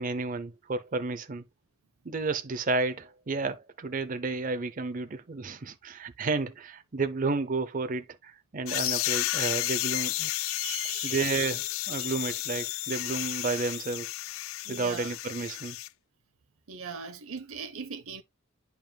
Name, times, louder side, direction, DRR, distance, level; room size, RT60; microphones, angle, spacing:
voice 1, 0.0-1.4 2.0-10.3 11.0-14.1 14.7-15.8, right 3 dB, 40° right, 0.6 m, -31 dB
sound 1, 8.7-15.9, left 16 dB, 70° left, 0.3 m, -32 dB
voice 2, 10.4-11.3 12.0-12.1 14.6-15.1 16.7-18.2, right 6 dB, 80° right, 0.7 m, -40 dB
9.0 x 5.5 x 2.2 m
head